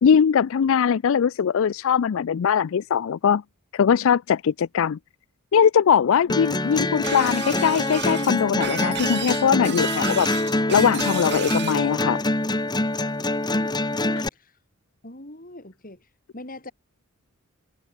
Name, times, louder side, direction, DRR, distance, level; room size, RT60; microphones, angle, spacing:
voice 1, 0.0-3.4 3.7-5.0 5.5-10.3 10.7-12.2 14.2-14.3, left 7 dB, 60° left, 0.4 m, -21 dB
sound 1, 6.3-14.3, left 2 dB, 20° left, 1.5 m, -25 dB
Shatter, 7.0-11.8, right 10 dB, 50° right, 2.1 m, -33 dB
voice 2, 8.1-8.5 15.0-16.0 16.3-16.7, left 1 dB, 40° left, 5.0 m, -39 dB
head